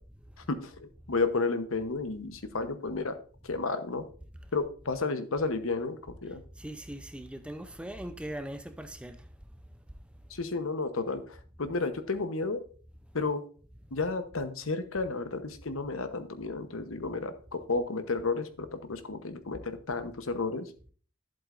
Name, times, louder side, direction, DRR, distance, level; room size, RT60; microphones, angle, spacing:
voice 1, 0.5-3.2 3.4-4.0 4.5-6.4 10.3-12.6 13.1-13.4 13.9-20.7, left 3 dB, 75° left, 1.0 m, -32 dB
voice 2, 6.6-9.2, right 1 dB, 5° right, 0.5 m, -40 dB
11.5 x 7.8 x 2.5 m
head